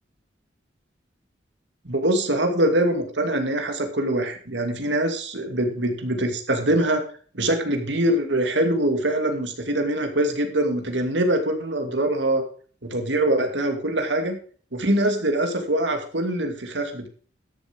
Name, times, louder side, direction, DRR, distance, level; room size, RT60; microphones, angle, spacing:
voice 1, 1.8-7.0 7.3-12.4 12.8-14.4 14.7-17.1, right 1 dB, 80° right, 5 dB, 2.5 m, -23 dB
13.0 x 7.2 x 5.3 m, 0.42 s
head